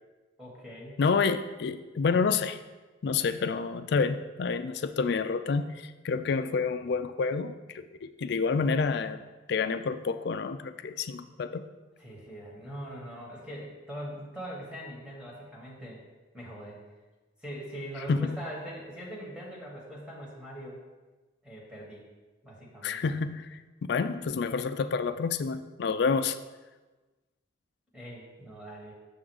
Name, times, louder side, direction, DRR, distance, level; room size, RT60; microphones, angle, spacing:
voice 1, 0.4-1.0 12.0-16.0 16.3-16.8 17.4-20.8 21.4-22.1 22.4-23.0 27.9-28.9, equal, 5° right, -4 dB, 1.5 m, -42 dB
voice 2, 1.0-2.6 3.0-9.2 9.5-11.7 18.1-18.4 22.8-23.6 23.9-26.4, left 5 dB, 55° left, 11 dB, 0.3 m, -28 dB
6.8 x 3.7 x 6.3 m, 1.2 s
head